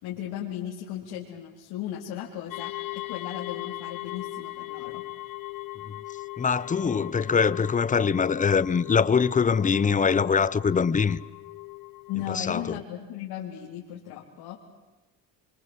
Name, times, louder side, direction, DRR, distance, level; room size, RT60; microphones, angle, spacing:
voice 1, 0.0-5.1 12.1-14.6, left 11 dB, 90° left, 3.9 m, -36 dB
sound 1, 2.5-12.4, left 19 dB, 60° left, 1.1 m, -39 dB
voice 2, 6.4-11.2 12.3-12.8, left 6 dB, 20° left, 0.8 m, -23 dB
28.5 x 25.0 x 8.1 m
cardioid pair, 140°, 37 cm